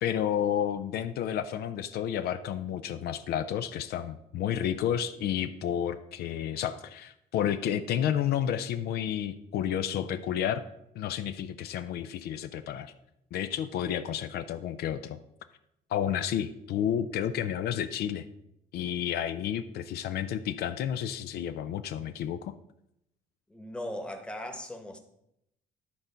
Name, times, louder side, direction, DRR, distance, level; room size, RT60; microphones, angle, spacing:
voice 1, 0.0-10.6 11.0-12.9 13.3-15.2 15.9-18.3 18.7-22.5, left 9 dB, 70° left, 10 dB, 0.5 m, -31 dB
voice 2, 23.5-25.0, left 1 dB, 5° left, 5 dB, 1.1 m, -38 dB
10.5 x 3.9 x 5.5 m, 0.81 s
cardioid pair, 110°, 17 cm